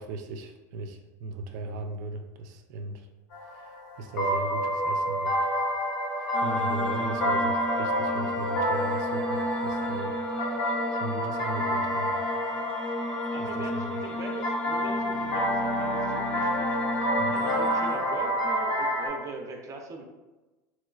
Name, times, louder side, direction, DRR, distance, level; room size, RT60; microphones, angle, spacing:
voice 1, 0.0-3.1 3.5-3.7 4.0-5.5 6.2-10.1 10.9-12.2 13.4-13.9 17.2-17.3, right 2 dB, 75° right, 5 dB, 0.4 m, -37 dB
sound 1, 3.3-19.1, equal, 85° left, 0.8 m, -29 dB
sound 2, 6.3-17.9, left 1 dB, 10° left, 0.5 m, -34 dB
voice 2, 13.3-20.0, right 3 dB, 35° right, 3 dB, 0.6 m, -41 dB
Bowed string instrument, 14.7-18.2, left 3 dB, 40° left, 0.9 m, -42 dB
3.0 x 3.0 x 2.3 m, 1.1 s
supercardioid pair, 105°, 10 cm